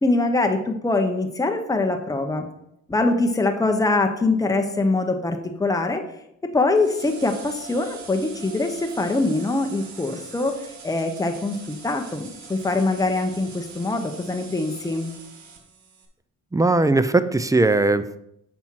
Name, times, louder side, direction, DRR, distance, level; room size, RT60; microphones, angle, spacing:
voice 1, 0.0-2.5 2.9-6.0 6.5-15.1, left 2 dB, 10° left, 4 dB, 0.9 m, -23 dB
sound 1, 6.8-16.1, right 5 dB, 70° right, 1.5 m, -43 dB
voice 2, 16.5-18.2, right 2 dB, 10° right, 12 dB, 0.4 m, -19 dB
7.4 x 5.4 x 4.6 m, 0.77 s
cardioid pair, 90°, 30 cm